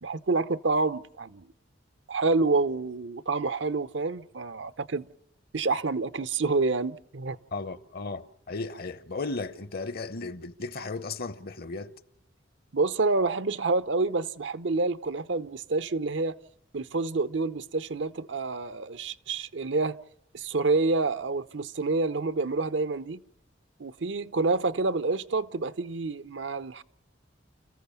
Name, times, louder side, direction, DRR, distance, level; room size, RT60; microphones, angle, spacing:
voice 1, 0.0-1.4 2.1-5.1 5.5-7.4 12.7-16.3 16.7-20.0 20.3-23.2 23.8-26.8, right 3 dB, 70° right, 0.8 m, -28 dB
voice 2, 7.5-11.9, left 3 dB, 55° left, 1.0 m, -35 dB
30.0 x 15.0 x 7.0 m
head